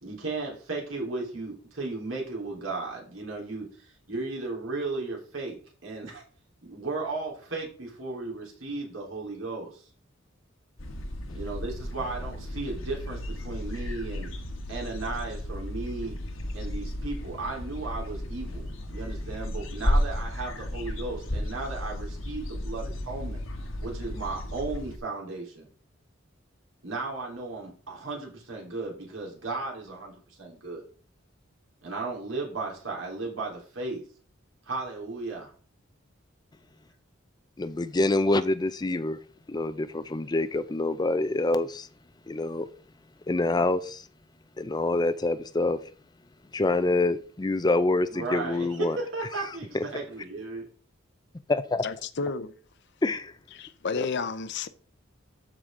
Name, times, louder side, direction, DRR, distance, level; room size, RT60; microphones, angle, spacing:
voice 1, 0.0-6.2 6.6-9.8 11.3-14.3 14.7-16.2 16.5-23.4 23.8-25.7 26.8-30.8 31.8-34.0 34.7-35.5 48.1-50.6, right 3 dB, 80° right, 3.7 m, -35 dB
sound 1, 10.8-25.0, left 1 dB, 75° left, 1.4 m, -33 dB
voice 2, 37.6-39.2 39.5-41.9 42.3-42.7 43.3-44.1 44.6-45.8 46.5-49.0 49.7-49.8 51.5-51.8 53.0-53.3 54.0-54.1, left 2 dB, 20° left, 0.4 m, -26 dB
voice 3, 51.8-52.5 53.5-54.7, left 4 dB, 60° left, 0.7 m, -31 dB
13.0 x 5.0 x 3.7 m
head